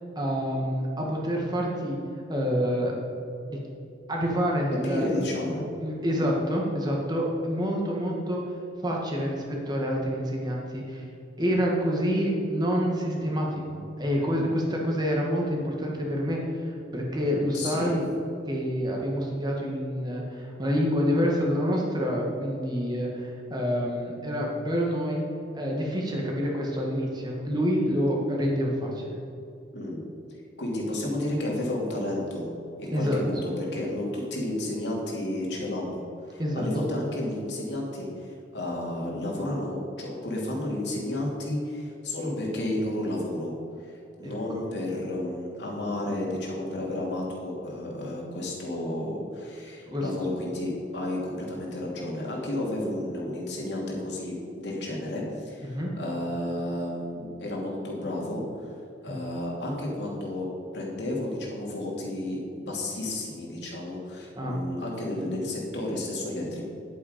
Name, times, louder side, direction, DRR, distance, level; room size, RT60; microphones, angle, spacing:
voice 1, 0.1-2.0 2.3-2.9 3.5-3.6 4.1-5.2 5.5-8.4 8.8-11.1 11.4-18.2 18.5-25.2 25.5-29.2 32.9-33.2 36.4-36.6 44.2-44.3 49.9-50.1 55.6-55.9 64.3-64.5, equal, 20° right, -2 dB, 1.6 m, -27 dB
voice 2, 4.7-5.6 6.1-6.3 11.4-11.5 17.5-18.0 29.7-30.0 30.6-32.5 32.8-36.0 36.3-38.1 38.5-43.5 43.8-58.7 59.0-66.6, left 1 dB, 70° left, -3 dB, 2.7 m, -32 dB
10.5 x 8.4 x 5.1 m, 2.6 s
head